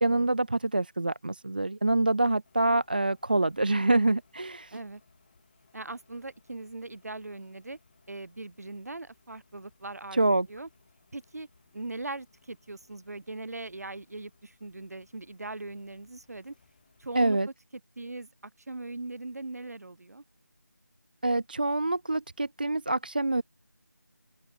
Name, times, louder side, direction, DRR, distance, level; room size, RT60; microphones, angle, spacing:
voice 1, 0.0-4.8 10.1-10.5 17.1-17.5 21.2-23.4, right 2 dB, 30° right, 0.4 m, -26 dB
sound 1, 2.4-17.4, left 5 dB, 30° left, 7.8 m, -66 dB
voice 2, 5.7-7.8 8.1-10.7 11.1-11.5 11.7-16.5 17.0-17.4 18.0-20.2, right 2 dB, 60° right, 3.7 m, -40 dB
open air
figure-of-eight pair, 170°, 10 cm